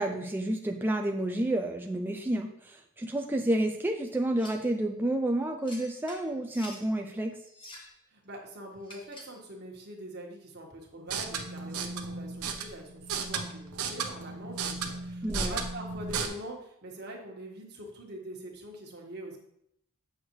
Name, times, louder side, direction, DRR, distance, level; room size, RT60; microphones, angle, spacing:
voice 1, 0.0-7.4 15.2-15.6, right 1 dB, 10° right, 3 dB, 0.3 m, -30 dB
sound 1, 4.4-4.7 5.7-6.9 7.5-8.0 8.8-9.4, left 1 dB, 20° left, 1.2 m, -48 dB
voice 2, 8.1-19.4, right 1 dB, 50° right, -1 dB, 1.5 m, -43 dB
sound 2, 11.0-16.3, right 5 dB, 90° right, 0.8 m, -35 dB
7.9 x 6.4 x 3.1 m, 0.75 s
head